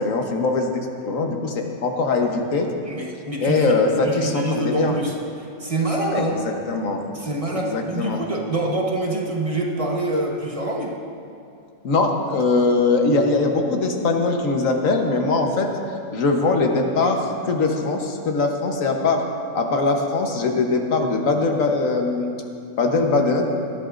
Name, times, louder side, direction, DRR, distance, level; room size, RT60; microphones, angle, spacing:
voice 1, 0.0-2.7 3.4-4.9 6.1-7.0 7.5-8.2 11.8-15.7 16.1-19.2 19.5-22.3 22.8-23.4, left 3 dB, 85° left, 3 dB, 1.5 m, -21 dB
voice 2, 2.9-3.7 4.0-6.4 7.1-10.9, right 2 dB, 30° right, -2 dB, 1.2 m, -25 dB
18.5 x 13.0 x 2.5 m, 2.5 s
omnidirectional pair, 1.3 m